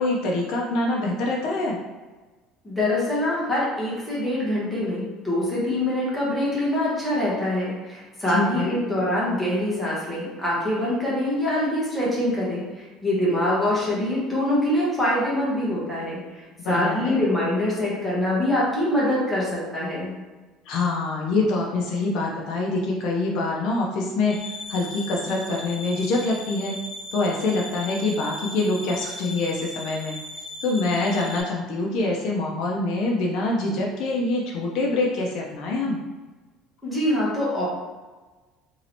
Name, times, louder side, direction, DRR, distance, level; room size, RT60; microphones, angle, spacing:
voice 1, 0.0-1.8 8.3-8.8 16.6-17.2 20.7-24.4 24.7-26.7 27.1-30.2 30.6-36.0, left 2 dB, 55° left, -1 dB, 0.5 m, -25 dB
voice 2, 2.6-20.1 36.8-37.7, left 1 dB, ahead, -8 dB, 1.0 m, -24 dB
sound 1, 24.3-31.4, left 1 dB, 35° left, 1.1 m, -38 dB
3.0 x 2.7 x 2.9 m, 1.3 s
cardioid pair, 165°, 0 cm